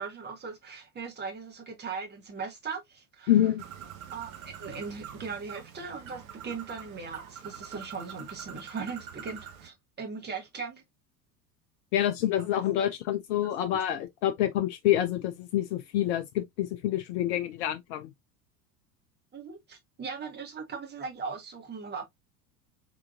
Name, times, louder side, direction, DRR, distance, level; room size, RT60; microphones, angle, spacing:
voice 1, 0.0-3.4 4.1-10.8 12.4-12.6 13.7-13.8 19.3-22.0, right 5 dB, 20° right, 1.6 m, -39 dB
voice 2, 3.3-3.6 11.9-18.1, left 12 dB, 50° left, 0.5 m, -27 dB
Bird, 3.6-9.7, right 8 dB, 60° right, 1.0 m, -45 dB
3.7 x 3.3 x 2.4 m
figure-of-eight pair, 75°, 47 cm